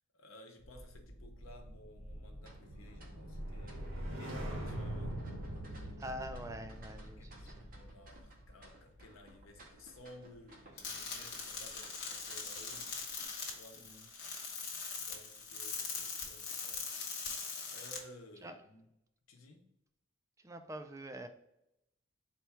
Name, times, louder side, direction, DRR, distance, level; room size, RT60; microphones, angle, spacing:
voice 1, 0.1-5.2 6.9-13.1 13.4-14.4 15.0-17.2 17.7-18.9 19.3-19.7, left 1 dB, 85° left, 3 dB, 0.8 m, -57 dB
sound 1, 0.6-11.0 11.3-11.6, right 1 dB, 75° right, 1.1 m, -44 dB
sound 2, 2.4-13.2, right 2 dB, 45° right, 0.7 m, -60 dB
voice 2, 6.0-7.7 13.8-14.0 18.4-18.6 20.4-21.3, right 1 dB, 15° right, 7 dB, 0.3 m, -45 dB
sound 3, 10.8-18.0, left 5 dB, 55° left, 1.0 m, -41 dB
4.4 x 2.3 x 4.2 m, 0.83 s
head